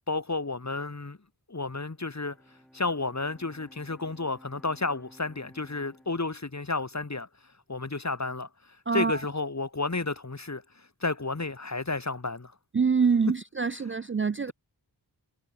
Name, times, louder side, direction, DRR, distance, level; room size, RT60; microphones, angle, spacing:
voice 1, 0.1-1.2 1.5-2.4 2.7-7.3 7.7-8.5 8.9-10.6 11.0-12.5, left 3 dB, 40° left, 2.4 m, -31 dB
Bowed string instrument, 1.9-7.3, equal, ahead, 7.1 m, -56 dB
voice 2, 8.9-9.2 12.7-14.5, right 5 dB, 30° right, 0.4 m, -25 dB
wide cardioid pair, 60°, 42 cm